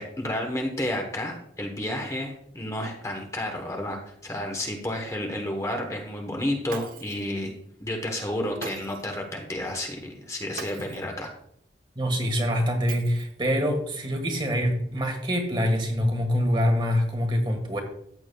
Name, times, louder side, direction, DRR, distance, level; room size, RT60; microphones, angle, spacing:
voice 1, 0.0-7.5 7.8-11.3, left 1 dB, 20° left, 3 dB, 1.0 m, -31 dB
Shatter, 6.7-7.3 8.6-9.2 10.6-11.1 12.9-13.5, right 5 dB, 55° right, 0.8 m, -41 dB
voice 2, 11.9-17.8, equal, 25° right, 5 dB, 1.5 m, -25 dB
14.0 x 8.4 x 2.3 m, 0.71 s
head